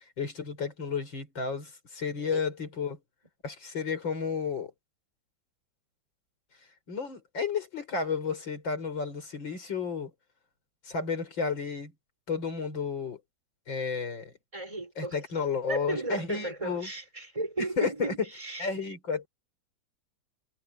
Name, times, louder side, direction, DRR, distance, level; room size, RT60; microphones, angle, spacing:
voice 1, 0.0-3.0 3.4-4.7 6.9-10.1 10.9-11.9 12.3-13.2 13.7-14.3 15.0-16.9 17.6-18.1 18.6-19.3, left 5 dB, 85° left, 5.3 m, -32 dB
voice 2, 14.5-15.2 15.7-18.7, right 2 dB, 15° right, 5.5 m, -35 dB
omnidirectional pair, 2.0 m